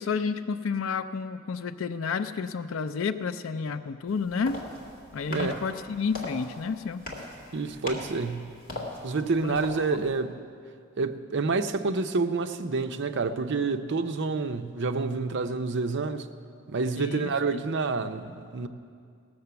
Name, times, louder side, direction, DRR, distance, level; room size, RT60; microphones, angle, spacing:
voice 1, 0.0-4.6 5.1-7.0 9.4-10.1 17.0-17.3, left 5 dB, 70° left, 0.4 m, -31 dB
sound 1, 4.1-10.2, left 1 dB, 45° left, 2.0 m, -40 dB
voice 2, 7.5-8.5 9.0-10.3 11.0-16.3 16.7-18.7, right 4 dB, 60° right, 0.6 m, -28 dB
17.5 x 6.7 x 6.9 m
head